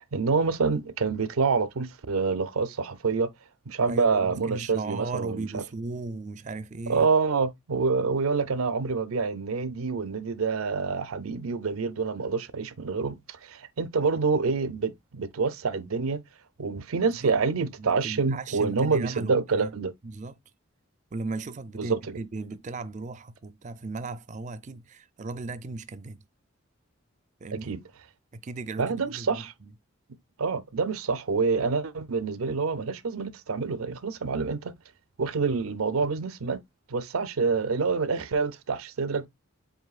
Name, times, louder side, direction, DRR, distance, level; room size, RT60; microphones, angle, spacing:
voice 1, 0.1-3.3 3.7-5.6 6.9-16.2 16.6-19.9 21.8-22.2 27.7-27.8 28.8-29.5 30.4-34.7 35.2-36.6 36.9-39.3, right 4 dB, 85° right, 0.6 m, -27 dB
voice 2, 3.9-7.1 17.2-17.4 17.8-19.7 20.0-20.4 21.1-26.2 27.4-27.8 28.3-29.7, right 3 dB, 35° right, 0.4 m, -36 dB
7.7 x 2.7 x 2.4 m
head